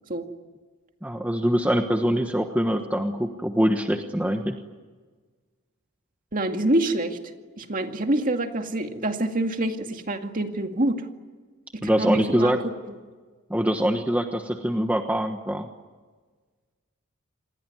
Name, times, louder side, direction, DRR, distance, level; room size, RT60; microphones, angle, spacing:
voice 1, 1.0-4.6 11.8-12.6 13.5-15.7, equal, 5° right, 5 dB, 1.2 m, -24 dB
voice 2, 6.3-7.2 7.6-11.1 11.7-12.6 12.9-13.0, right 1 dB, 40° right, 5 dB, 2.2 m, -26 dB
27.5 x 20.5 x 9.4 m, 1.4 s
head